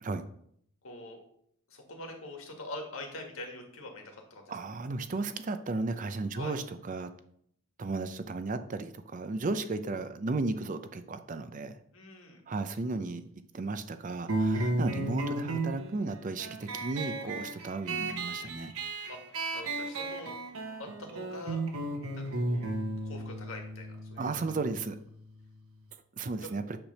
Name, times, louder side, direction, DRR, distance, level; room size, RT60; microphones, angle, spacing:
voice 1, 0.8-1.2 1.7-4.4 6.3-6.5 11.9-12.4 19.1-19.2 19.5-20.3 20.8-21.6 22.1-22.7 23.0-24.3 26.4-26.5, left 2 dB, 70° left, 3 dB, 1.7 m, -44 dB
voice 2, 4.5-7.1 7.8-11.7 12.5-13.2 13.5-18.7 24.2-25.0 26.2-26.6, right 3 dB, 35° right, 9 dB, 0.4 m, -34 dB
sound 1, 14.3-25.4, right 2 dB, 75° right, 1.1 m, -34 dB
8.8 x 3.4 x 6.4 m, 0.68 s
head